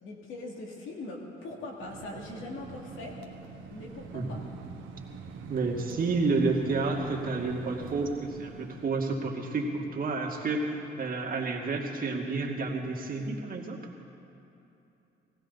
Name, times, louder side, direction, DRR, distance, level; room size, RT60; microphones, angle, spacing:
voice 1, 0.0-3.2 3.7-4.4, left 2 dB, 80° left, -1 dB, 2.7 m, -41 dB
sound 1, 1.8-8.9, right 5 dB, 85° right, 1.3 m, -44 dB
voice 2, 4.1-4.5 5.5-13.8, right 3 dB, 45° right, 0 dB, 2.1 m, -30 dB
20.5 x 15.5 x 4.1 m, 2.9 s
cardioid pair, 90°, 20 cm